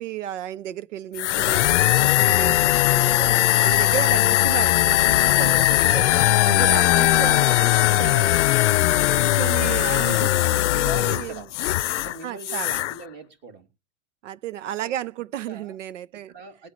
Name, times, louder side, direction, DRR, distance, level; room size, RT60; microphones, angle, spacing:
voice 1, 0.0-6.1 6.4-8.5 9.1-11.4 12.2-12.8 14.2-16.3, right 12 dB, 85° right, 0.9 m, -33 dB
sound 1, 1.2-12.2 12.4-12.9, left 16 dB, 70° left, 0.6 m, -19 dB
voice 2, 8.7-9.5 10.8-11.5 11.9-13.7 14.6-14.9 15.4-15.8 16.3-16.7, right 3 dB, 30° right, 2.8 m, -41 dB
21.0 x 8.2 x 3.1 m
supercardioid pair, 155°, 36 cm